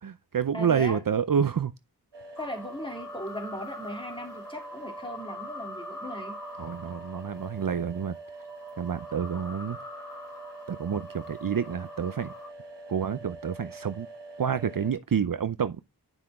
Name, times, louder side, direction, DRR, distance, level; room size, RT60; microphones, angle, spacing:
voice 1, 0.0-1.7 6.6-8.2 8.8-9.8 10.7-12.3 12.9-14.1 14.4-15.8, right 7 dB, 55° right, 0.6 m, -28 dB
voice 2, 0.5-1.0 2.4-6.4, equal, 10° left, 2.8 m, -38 dB
sound 1, 2.1-14.9, right 2 dB, 85° right, 1.3 m, -45 dB
sound 2, 2.4-12.5, left 2 dB, 50° left, 1.7 m, -44 dB
9.0 x 5.8 x 3.6 m
wide cardioid pair, 45°, 40 cm